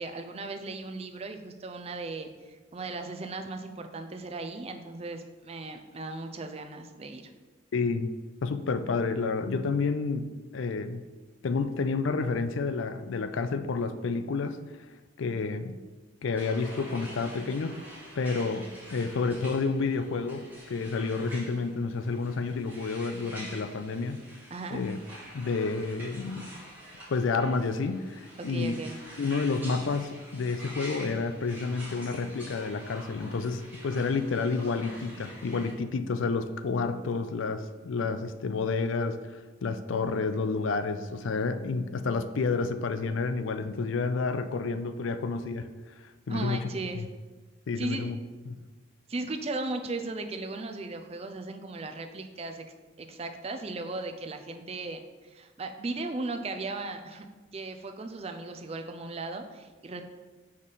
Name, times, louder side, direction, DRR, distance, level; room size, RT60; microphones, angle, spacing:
voice 1, 0.0-7.3 24.5-24.8 28.4-29.0 46.3-47.0 47.8-48.1 49.1-52.7 53.0-57.3 57.5-60.0, right 2 dB, 30° right, 6 dB, 0.5 m, -37 dB
voice 2, 7.7-8.1 8.4-11.0 11.4-14.6 15.2-15.8 16.2-17.7 18.2-24.2 24.7-25.0 25.3-26.5 27.1-28.8 29.2-45.7 46.0-46.7 46.9-47.1 47.7-48.2 48.5-48.6, left 4 dB, 75° left, 10 dB, 0.4 m, -30 dB
sound 1, 16.3-35.7, equal, 10° right, 1.9 m, -47 dB
5.0 x 4.0 x 5.6 m, 1.3 s
head